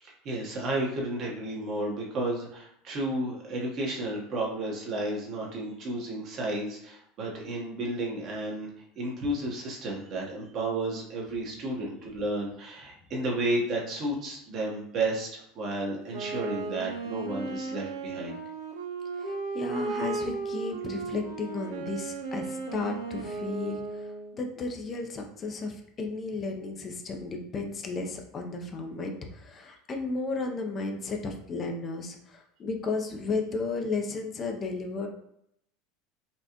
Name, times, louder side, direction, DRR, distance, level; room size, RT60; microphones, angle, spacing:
voice 1, 0.0-8.7 9.0-18.4, right 1 dB, 50° right, -2 dB, 1.2 m, -32 dB
Wind instrument woodwind instrument, 16.1-24.4, right 4 dB, 85° right, 0.5 m, -35 dB
voice 2, 19.2-24.1 24.4-35.1, left 3 dB, 35° left, 3 dB, 0.6 m, -34 dB
4.2 x 2.4 x 2.9 m, 0.72 s
supercardioid pair, 105°, 0 cm